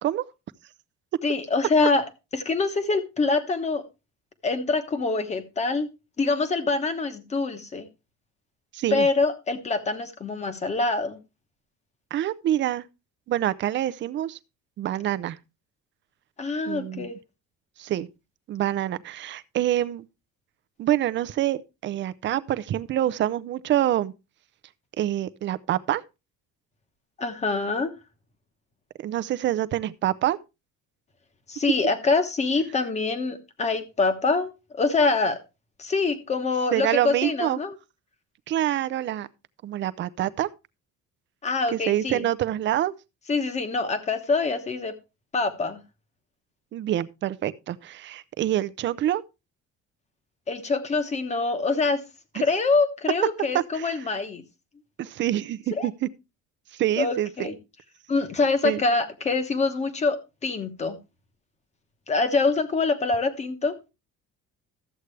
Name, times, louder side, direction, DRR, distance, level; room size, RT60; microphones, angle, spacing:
voice 1, 1.2-2.0 2.3-3.8 4.4-5.9 6.2-7.9 8.9-11.2 16.4-17.2 27.2-27.9 31.5-35.4 35.8-37.8 41.4-42.3 43.3-44.9 45.3-45.8 50.5-52.0 52.3-54.4 55.8-55.9 57.0-57.6 58.1-61.0 62.1-63.7, left 3 dB, 20° left, 1.1 m, -25 dB
voice 2, 8.7-9.1 12.1-12.8 13.3-14.4 14.8-15.4 16.7-17.1 17.8-18.1 18.5-20.1 20.8-24.1 25.0-26.0 29.0-30.4 36.7-37.6 38.5-39.3 39.6-40.5 41.7-42.9 46.7-49.2 53.7-53.9 55.0-56.1 56.7-57.5 58.6-58.8, right 12 dB, 40° right, 0.5 m, -26 dB
13.0 x 8.0 x 3.2 m
cardioid pair, 180°, 30 cm